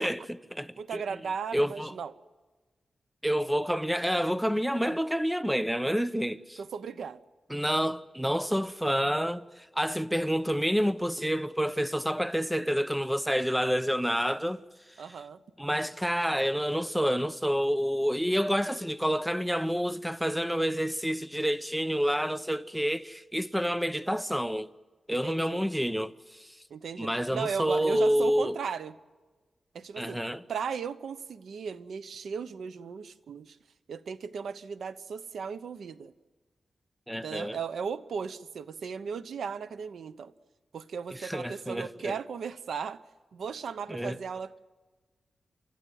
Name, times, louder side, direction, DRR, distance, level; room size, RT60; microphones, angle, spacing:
voice 1, 0.0-1.0 1.5-1.9 3.2-6.6 7.5-14.6 15.6-24.7 25.1-26.6 27.0-28.6 30.0-30.4 37.1-37.6 41.1-42.2 43.9-44.2, equal, 5° right, 0.7 m, -28 dB
voice 2, 0.8-2.1 6.6-7.2 15.0-15.4 25.1-25.6 26.7-28.9 29.7-30.2 30.5-33.6 33.9-36.1 37.2-40.3 40.7-43.0 43.3-44.7, right 6 dB, 90° right, 0.9 m, -36 dB
29.5 x 13.5 x 9.5 m
wide cardioid pair, 105°, 0 cm